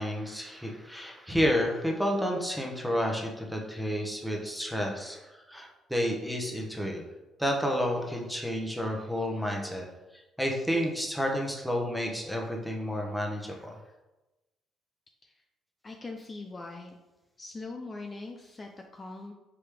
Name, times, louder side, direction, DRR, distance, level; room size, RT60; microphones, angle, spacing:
voice 1, 0.0-7.0 7.4-9.8 10.4-13.8, equal, ahead, 0 dB, 1.1 m, -30 dB
voice 2, 15.8-17.0 17.4-19.3, left 3 dB, 30° left, 2 dB, 0.5 m, -41 dB
4.8 x 3.0 x 3.5 m, 1.0 s
supercardioid pair, 60°, 0 cm